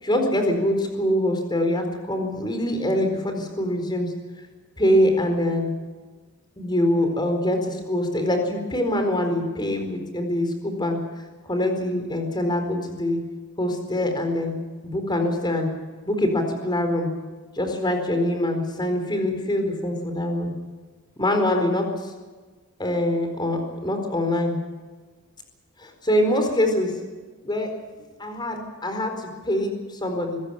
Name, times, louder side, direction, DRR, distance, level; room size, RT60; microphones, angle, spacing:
voice 1, 0.0-4.1 4.8-5.7 6.6-11.0 11.4-13.2 13.6-14.5 14.8-15.7 16.1-17.1 17.5-20.5 21.2-22.1 22.8-24.6 25.8-27.0 27.4-27.7 28.2-30.4, left 1 dB, 20° left, 5 dB, 4.4 m, -24 dB
25.5 x 16.0 x 7.2 m, 1.4 s
head